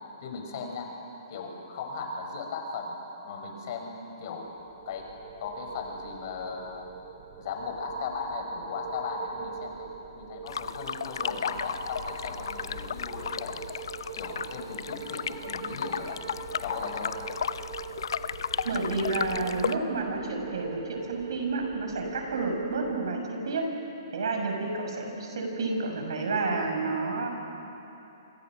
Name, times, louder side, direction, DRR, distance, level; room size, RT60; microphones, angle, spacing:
voice 1, 0.2-0.9 1.3-2.9 3.2-4.5 4.9-5.1 5.4-6.9 7.4-13.7 14.2-16.2 16.6-17.3, left 4 dB, 50° left, 2 dB, 5.7 m, -37 dB
sound 1, 4.5-23.1, right 7 dB, 45° right, 2.9 m, -43 dB
sound 2, 10.5-19.7, left 7 dB, 70° left, 0.8 m, -34 dB
voice 2, 18.6-23.7 24.1-27.3, right 3 dB, 75° right, 2 dB, 6.3 m, -30 dB
28.5 x 26.0 x 6.3 m, 3.0 s
hypercardioid pair, 135°, 2 cm